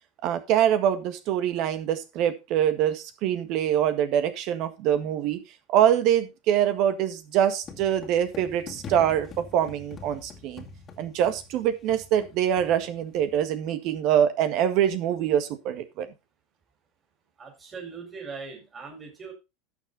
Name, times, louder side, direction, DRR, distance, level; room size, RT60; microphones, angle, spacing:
voice 1, 0.2-5.4 5.7-10.6 11.0-16.1, right 10 dB, 55° right, 10 dB, 1.7 m, -24 dB
sound 1, 7.6-13.4, left 4 dB, 30° left, 2.2 m, -44 dB
voice 2, 17.4-19.3, right 5 dB, 25° right, 1 dB, 4.6 m, -40 dB
12.0 x 7.0 x 4.0 m, 0.26 s
hypercardioid pair, 90°, 0 cm